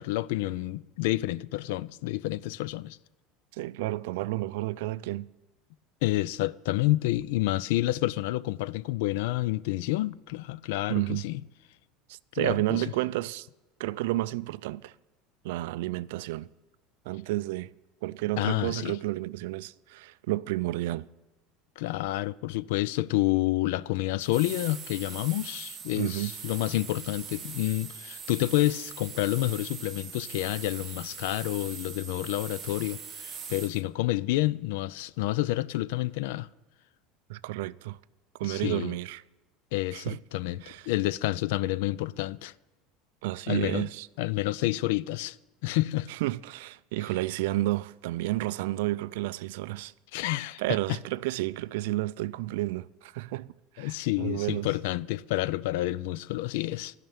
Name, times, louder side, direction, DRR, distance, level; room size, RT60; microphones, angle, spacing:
voice 1, 0.0-3.0 6.0-11.4 12.4-12.8 18.4-19.0 21.8-36.5 38.4-38.9 39.7-42.5 43.5-43.9 44.2-45.4 45.6-46.1 50.1-50.6 53.8-56.9, left 17 dB, 70° left, 0.3 m, -29 dB
voice 2, 3.5-5.3 10.9-11.3 12.1-13.5 13.8-14.9 15.4-16.5 17.1-17.7 18.0-21.1 25.9-26.3 37.3-38.0 38.4-39.2 39.9-40.2 40.6-40.9 43.2-44.1 46.1-49.9 50.6-54.7, right 17 dB, 75° right, 0.3 m, -31 dB
sound 1, 24.2-33.8, right 7 dB, 20° right, 1.0 m, -42 dB
12.5 x 5.7 x 8.9 m
cardioid pair, 175°, 0 cm